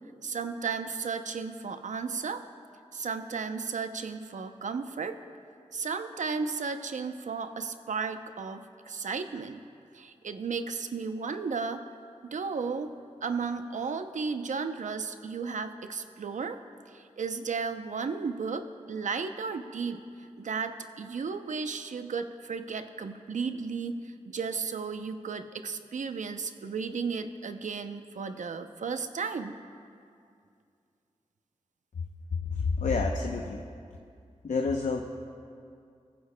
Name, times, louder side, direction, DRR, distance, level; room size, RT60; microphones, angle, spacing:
voice 1, 0.2-2.4 2.9-5.2 5.7-9.6 9.9-11.8 12.2-12.9 13.2-16.6 16.9-20.0 20.4-29.5, right 5 dB, 80° right, 8 dB, 0.6 m, -34 dB
voice 2, 32.5-33.6 34.4-35.0, left 4 dB, 75° left, 2 dB, 0.7 m, -28 dB
20.0 x 15.0 x 2.2 m, 2.4 s
cardioid pair, 40°, 13 cm